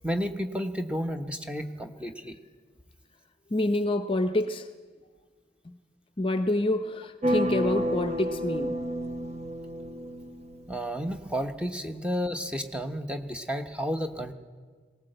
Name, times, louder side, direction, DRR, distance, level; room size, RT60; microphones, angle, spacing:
voice 1, 0.0-2.4 10.7-14.3, equal, 5° right, 6 dB, 1.0 m, -32 dB
voice 2, 3.5-4.7 6.2-8.8, left 1 dB, 30° left, 10 dB, 0.6 m, -27 dB
sound 1, 7.2-11.0, equal, 35° right, 0.8 m, -30 dB
19.5 x 18.0 x 7.9 m, 1.6 s
head